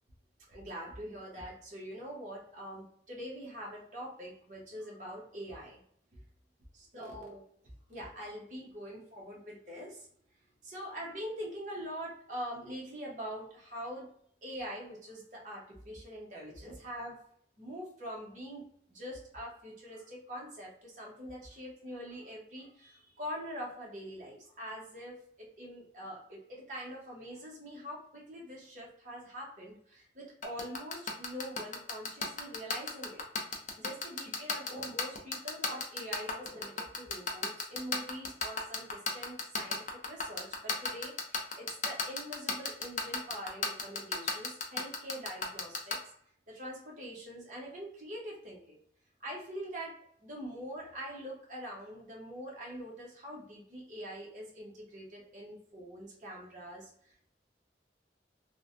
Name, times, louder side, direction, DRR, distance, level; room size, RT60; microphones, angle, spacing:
voice 1, 0.5-5.8 6.7-7.4 7.9-10.1 10.6-14.1 14.4-17.2 17.6-33.2 33.8-46.0 46.5-48.8 49.2-57.3, equal, 45° right, -3 dB, 0.9 m, -44 dB
sound 1, 30.4-45.9, left 5 dB, 40° left, 0.5 m, -32 dB
3.2 x 2.1 x 2.5 m, 0.65 s
head